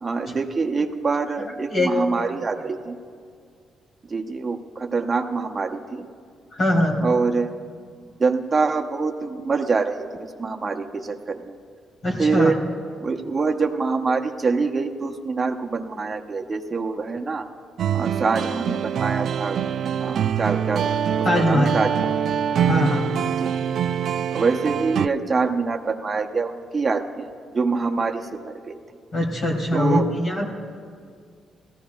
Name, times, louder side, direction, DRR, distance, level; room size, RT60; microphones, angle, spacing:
voice 1, 0.0-3.0 4.1-6.1 7.0-7.5 8.2-10.1 10.4-11.6 12.2-12.6 13.0-17.5 17.9-19.6 20.0-22.2 23.4-23.6 24.3-27.3 27.5-28.8 29.7-30.0, right 4 dB, 35° right, 3 dB, 0.8 m, -25 dB
voice 2, 1.7-2.3 6.5-7.0 12.0-12.5 21.2-21.7 22.7-23.1 29.1-30.4, left 1 dB, 60° left, -2 dB, 3.0 m, -22 dB
sound 1, 17.8-25.1, right 8 dB, 65° right, 0.3 m, -24 dB
18.0 x 14.5 x 2.4 m, 2.1 s
supercardioid pair, 70°, 0 cm